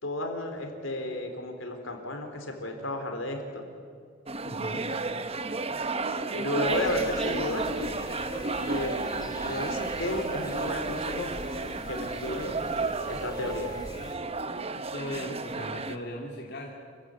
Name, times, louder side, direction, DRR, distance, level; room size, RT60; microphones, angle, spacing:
voice 1, 0.0-3.7 6.3-7.9 8.7-11.3 11.9-12.6 13.1-13.7, left 1 dB, 75° left, 4 dB, 4.0 m, -33 dB
sound 1, 4.3-16.0, right 3 dB, 30° right, 1.0 m, -32 dB
voice 2, 4.4-4.9 14.9-16.7, equal, 55° left, -1 dB, 2.6 m, -37 dB
sound 2, 6.6-14.2, equal, 20° left, 2.5 m, -43 dB
28.0 x 16.0 x 9.9 m, 2.2 s
head